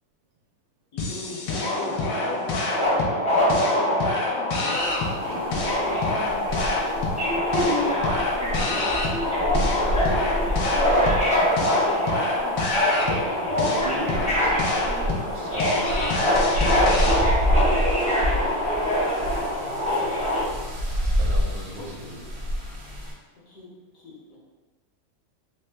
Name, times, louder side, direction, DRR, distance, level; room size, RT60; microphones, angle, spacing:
voice 1, 0.9-2.7 4.5-6.6 21.1-21.3 22.0-22.1 23.5-24.4, left 2 dB, 65° left, -5 dB, 1.0 m, -41 dB
sound 1, 1.0-17.2, left 3 dB, 80° left, 1.3 m, -29 dB
Subway metro underground, 1.6-20.4, left 1 dB, 10° left, 0.4 m, -24 dB
sound 2, 4.8-23.1, equal, 60° right, 0.7 m, -29 dB
voice 2, 13.4-17.1 21.2-22.4, right 1 dB, 80° right, 0 dB, 1.2 m, -39 dB
3.4 x 2.4 x 3.3 m, 1.3 s
omnidirectional pair, 2.0 m